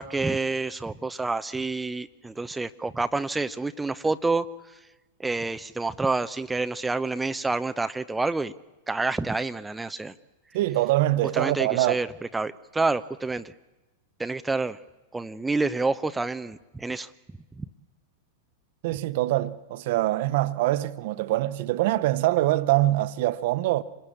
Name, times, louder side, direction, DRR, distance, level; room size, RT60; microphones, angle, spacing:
voice 1, 0.0-4.8 5.2-8.5 8.9-10.1 11.3-12.1 12.3-13.5 14.2-14.8 15.1-17.1 17.6-17.7, right 3 dB, 10° right, 0.8 m, -28 dB
voice 2, 10.5-12.0 18.8-23.8, right 16 dB, 50° right, 1.1 m, -24 dB
27.5 x 20.5 x 8.7 m
figure-of-eight pair, 95°, 0 cm